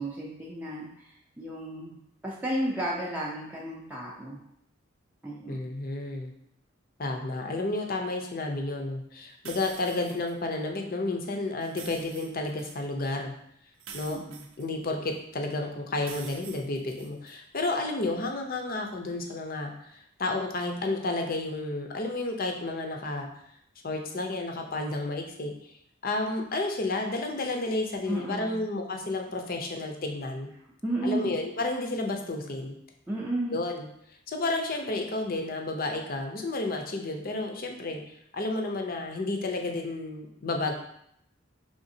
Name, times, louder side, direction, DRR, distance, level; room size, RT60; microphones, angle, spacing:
voice 1, 0.0-4.4 5.2-5.6 14.1-14.4 28.1-28.6 30.8-31.4 33.1-33.6, right 1 dB, 10° right, -4 dB, 0.5 m, -33 dB
voice 2, 5.5-6.3 7.0-13.3 13.9-14.2 14.6-23.3 23.8-25.7 26.0-30.5 31.0-32.7 33.5-33.8 34.3-40.7, left 2 dB, 45° left, 3 dB, 0.6 m, -31 dB
sound 1, 9.5-10.3 11.6-12.8 13.8-15.2 16.0-17.4, right 6 dB, 70° right, 0.5 m, -46 dB
5.0 x 3.5 x 2.7 m, 0.74 s
head